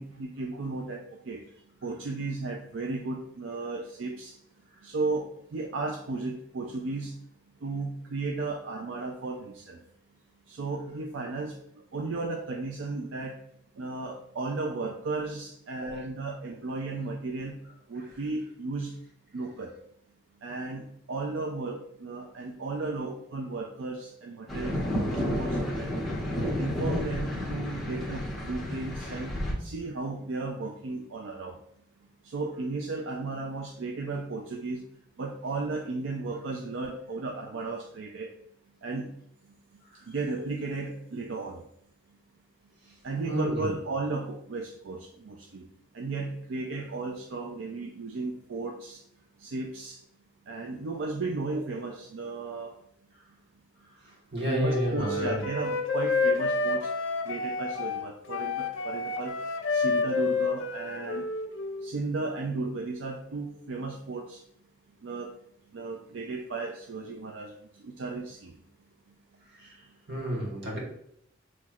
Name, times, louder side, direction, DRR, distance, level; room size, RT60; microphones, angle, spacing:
voice 1, 0.0-1.4 1.8-4.3 4.8-7.1 7.6-9.8 10.5-11.5 11.9-13.3 13.8-17.6 17.9-18.9 19.3-19.7 20.4-20.8 21.1-24.8 25.3-26.0 26.4-29.3 29.6-31.6 32.3-34.8 35.2-38.3 38.8-39.1 40.1-41.6 43.0-45.6 45.9-49.0 49.4-50.0 50.5-52.7 54.5-56.9 57.3-59.3 59.7-61.3 61.8-64.4 65.0-65.3 65.7-67.5 67.8-68.5, right 3 dB, 85° right, 2 dB, 0.4 m, -34 dB
sound 1, 24.5-29.5, left 1 dB, ahead, 1.2 m, -31 dB
voice 2, 39.8-40.1 42.8-43.8 53.1-53.3 53.8-55.5 69.4-70.8, equal, 60° right, -3 dB, 1.4 m, -33 dB
Wind instrument woodwind instrument, 54.5-61.9, left 4 dB, 80° left, 0.5 m, -29 dB
5.8 x 3.1 x 2.4 m, 0.71 s
head